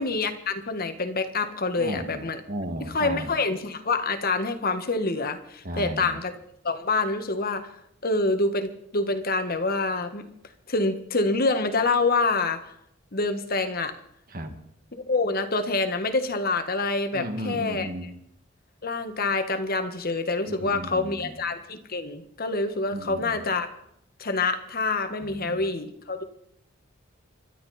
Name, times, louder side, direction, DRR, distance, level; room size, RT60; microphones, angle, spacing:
voice 1, 0.0-2.4 2.9-6.3 6.6-7.7 8.0-10.2 10.7-12.7 13.1-13.9 14.9-17.9 18.8-23.7 24.2-26.2, left 3 dB, 50° left, 8 dB, 1.6 m, -26 dB
voice 2, 1.8-3.3 5.6-6.2 14.3-14.5 17.1-18.1 20.5-21.4 22.9-23.4 25.2-25.6, right 1 dB, 45° right, 6 dB, 2.2 m, -35 dB
26.5 x 12.5 x 4.3 m, 0.75 s
head